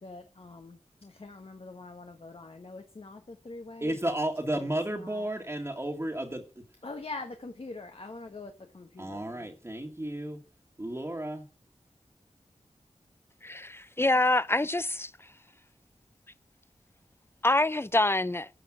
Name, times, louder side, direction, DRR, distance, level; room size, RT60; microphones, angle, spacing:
voice 1, 0.0-4.0 4.5-5.3 6.8-9.5, left 3 dB, 55° left, 1.3 m, -44 dB
voice 2, 3.8-6.4 9.0-10.4 10.8-11.4, right 1 dB, 20° right, 1.8 m, -32 dB
voice 3, 13.4-15.1 17.4-18.5, left 2 dB, 20° left, 0.6 m, -26 dB
9.9 x 5.7 x 6.0 m
cardioid pair, 45°, 12 cm